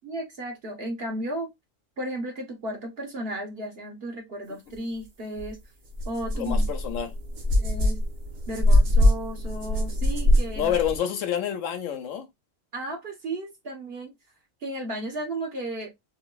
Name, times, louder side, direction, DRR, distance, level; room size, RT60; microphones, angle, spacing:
voice 1, 0.0-1.5 2.0-5.6 6.0-6.7 7.6-8.0 8.5-10.7 12.7-14.1 14.6-15.9, right 1 dB, 50° right, 1.3 m, -34 dB
sound 1, 5.4-5.5 5.9-11.0, left 1 dB, 85° right, 1.6 m, -23 dB
voice 2, 6.3-7.1 10.6-12.3, left 9 dB, 75° left, 1.1 m, -28 dB
4.6 x 2.9 x 2.2 m
omnidirectional pair, 1.4 m